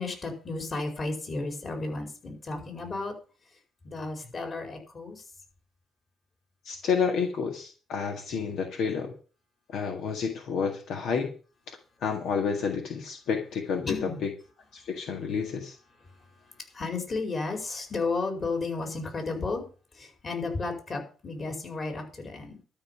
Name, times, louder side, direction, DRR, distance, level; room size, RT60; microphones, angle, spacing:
voice 1, 0.0-3.1 3.8-5.2 13.9-14.2 16.4-19.6 19.9-22.5, left 3 dB, 40° left, 4 dB, 4.9 m, -33 dB
voice 2, 6.6-9.1 9.7-11.3 11.7-14.3 14.7-15.8, left 6 dB, 80° left, 4 dB, 1.9 m, -30 dB
12.5 x 5.6 x 8.7 m, 0.38 s
cardioid pair, 90°, 0 cm